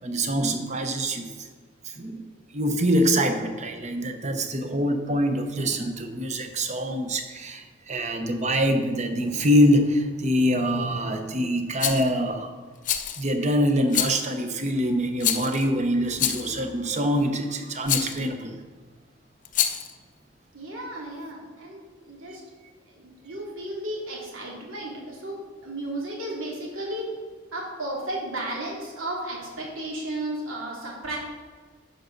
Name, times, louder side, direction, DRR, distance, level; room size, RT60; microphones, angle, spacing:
voice 1, 0.0-1.5 1.8-2.2 2.5-12.5 13.2-18.5, equal, 35° right, 6 dB, 0.8 m, -24 dB
Rattle, 11.8-12.1 12.8-13.3 13.9-14.3 15.2-15.6 16.2-16.6 17.9-18.2 19.5-19.9, left 10 dB, 40° left, 0.5 m, -26 dB
voice 2, 20.5-22.4 22.9-27.1 27.5-31.2, right 1 dB, 80° right, -3 dB, 2.7 m, -34 dB
11.0 x 6.8 x 3.9 m, 1.5 s
head